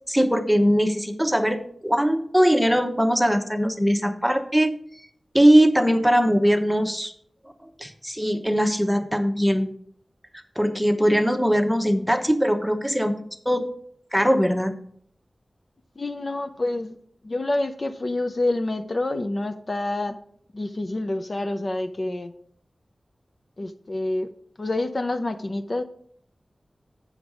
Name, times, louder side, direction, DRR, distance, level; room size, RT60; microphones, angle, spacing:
voice 1, 0.1-4.7 5.3-7.1 7.8-9.7 10.6-13.2 13.4-13.7 14.1-14.8, equal, ahead, 6 dB, 0.9 m, -20 dB
voice 2, 16.0-17.0 17.2-20.2 20.5-22.3 23.6-24.3 24.6-25.8, left 2 dB, 50° left, 7 dB, 0.6 m, -27 dB
7.9 x 6.4 x 4.8 m, 0.64 s
wide cardioid pair, 50°, 0 cm